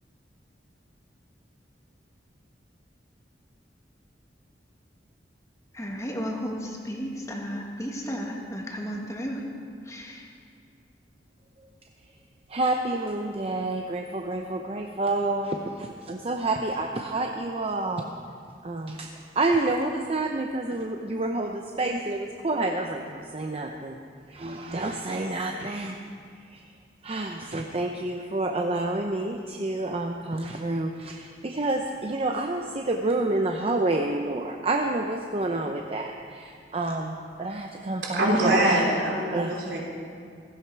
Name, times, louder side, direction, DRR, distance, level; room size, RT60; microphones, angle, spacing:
voice 1, 5.7-9.4 9.8-10.3, equal, 20° left, 0 dB, 1.6 m, -33 dB
voice 2, 12.5-18.1 18.6-19.1 19.4-24.0 24.3-26.0 26.3-26.6 27.0-38.7 39.3-39.6, right 2 dB, 35° right, 3 dB, 0.7 m, -29 dB
voice 3, 38.1-39.8, right 1 dB, 80° right, -3 dB, 3.4 m, -23 dB
16.5 x 14.5 x 4.6 m, 2.3 s
head